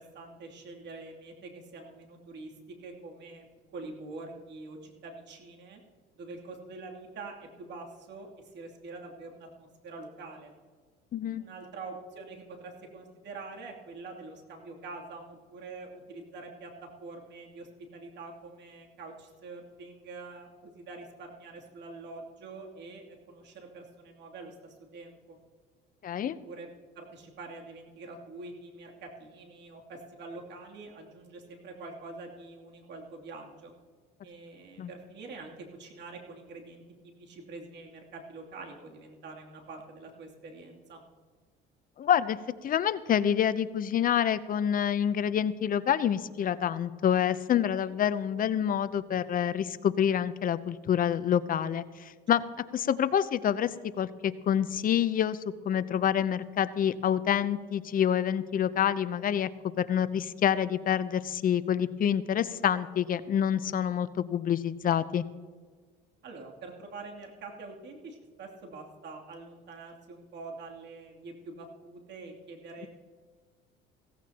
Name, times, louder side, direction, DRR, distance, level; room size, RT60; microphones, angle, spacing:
voice 1, 0.0-3.5 3.7-5.8 6.2-10.5 11.3-25.4 26.4-26.7 26.9-33.7 34.2-41.0 47.8-47.9 66.2-72.9, right 3 dB, 55° right, 0 dB, 2.9 m, -45 dB
voice 2, 11.1-11.4 26.0-26.3 34.8-34.9 42.0-52.4 52.7-55.4 55.6-59.5 59.8-65.2, left 9 dB, 40° left, 15 dB, 0.7 m, -27 dB
16.0 x 15.5 x 2.9 m, 1.5 s
supercardioid pair, 95°, 21 cm